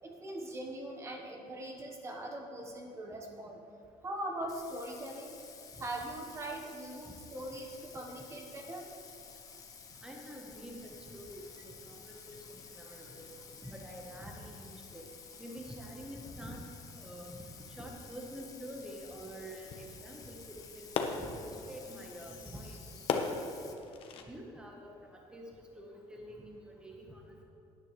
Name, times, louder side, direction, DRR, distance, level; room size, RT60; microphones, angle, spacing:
voice 1, 0.0-3.6 4.0-5.4 5.8-8.9 12.1-12.2 12.8-13.0, right 1 dB, 25° right, 2 dB, 1.2 m, -41 dB
Bathtub (filling or washing), 4.5-23.7, left 6 dB, 30° left, 1.0 m, -52 dB
sound 1, 8.4-24.2, left 5 dB, 50° left, 1.0 m, -44 dB
voice 2, 10.0-13.3 13.6-16.6 17.0-17.4 17.7-23.0 23.3-23.5 24.3-25.5 25.8-27.4, equal, 10° right, 0 dB, 1.2 m, -47 dB
17.5 x 10.0 x 3.2 m, 2.8 s
cardioid pair, 150°, 12 cm